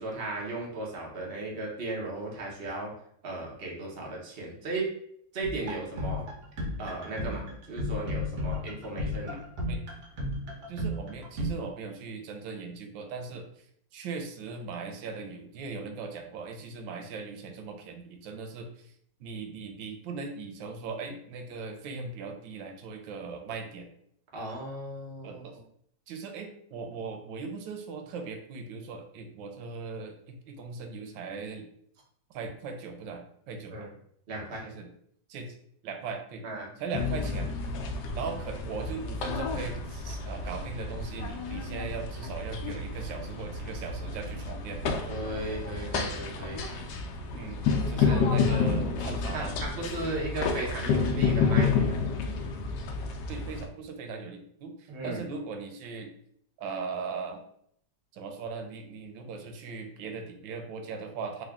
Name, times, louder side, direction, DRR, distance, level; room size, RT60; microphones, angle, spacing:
voice 1, 0.0-2.9 3.2-4.9 5.3-6.2 6.8-9.4 24.3-25.6 33.7-33.9 34.3-34.6 36.4-36.7 45.1-46.6 48.0-48.2 48.7-48.9 49.3-52.0 54.9-55.2, right 2 dB, 40° right, -2 dB, 1.0 m, -36 dB
sound 1, 5.4-11.5, left 1 dB, 65° right, 1.5 m, -34 dB
voice 2, 9.3-9.8 10.7-13.5 13.9-18.9 19.2-23.9 25.2-25.6 26.1-31.7 32.3-33.9 34.6-34.9 35.3-35.5 35.8-36.4 36.8-37.5 38.1-44.8 47.3-49.5 53.3-56.1 56.6-57.4 58.1-61.4, right 4 dB, 90° right, 4 dB, 1.3 m, -39 dB
sound 2, 36.9-53.7, left 5 dB, 75° left, 1.1 m, -30 dB
3.5 x 2.5 x 3.4 m, 0.68 s
omnidirectional pair, 2.0 m